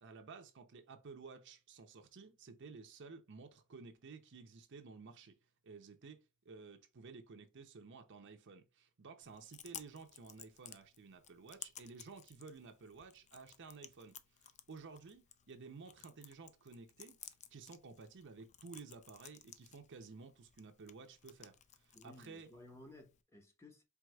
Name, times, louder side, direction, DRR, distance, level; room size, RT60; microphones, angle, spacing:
voice 1, 0.0-5.4 5.6-22.5, right 4 dB, 55° right, 0.6 m, -54 dB
Chewing mastication, 9.2-23.2, left 9 dB, 35° left, 0.4 m, -57 dB
voice 2, 21.9-23.8, left 1 dB, 10° left, 0.9 m, -57 dB
4.7 x 3.4 x 2.3 m
head